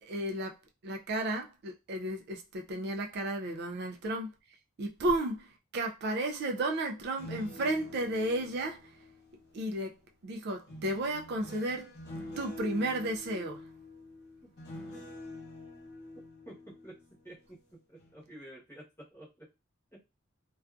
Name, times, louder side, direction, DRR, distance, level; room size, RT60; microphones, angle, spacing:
voice 1, 0.0-0.5 0.8-4.3 4.8-5.5 5.7-8.9 9.5-9.9 10.2-11.9 12.4-13.6, right 1 dB, 55° right, 0.4 m, -33 dB
sound 1, 7.0-9.9 10.7-17.6 18.0-18.3, left 1 dB, 55° left, 0.9 m, -47 dB
voice 2, 16.4-17.0 17.2-19.5 19.9-20.0, right 1 dB, 10° left, 1.0 m, -50 dB
2.5 x 2.3 x 2.3 m
head